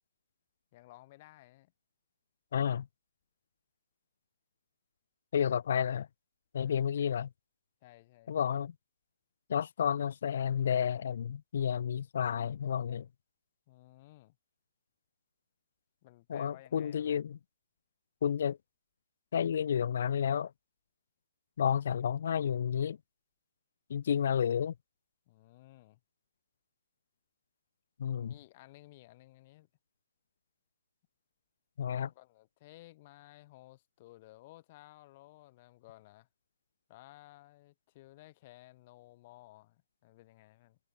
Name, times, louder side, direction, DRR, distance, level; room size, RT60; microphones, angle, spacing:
voice 1, 0.7-1.7 6.6-6.9 7.8-8.3 13.7-14.4 16.0-17.2 25.3-26.0 28.2-29.7 31.9-36.3 36.9-40.8, left 18 dB, 35° left, 7.8 m, -56 dB
voice 2, 2.5-2.9 5.3-6.1 6.5-7.3 8.3-8.7 9.5-13.1 16.3-17.4 18.2-18.6 19.3-20.5 21.6-23.0 23.9-24.7 28.0-28.3 31.8-32.1, left 8 dB, 55° left, 0.8 m, -31 dB
hypercardioid pair, 155°, 0 cm